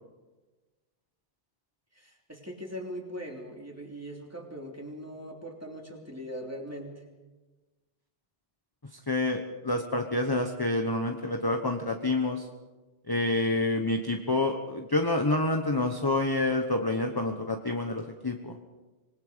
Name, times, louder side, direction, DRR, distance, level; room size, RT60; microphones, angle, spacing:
voice 1, 1.9-7.0, equal, 15° right, 1 dB, 3.3 m, -40 dB
voice 2, 9.1-12.5 13.1-18.6, left 2 dB, 20° left, 4 dB, 1.2 m, -28 dB
26.0 x 20.5 x 5.2 m, 1.2 s
omnidirectional pair, 1.1 m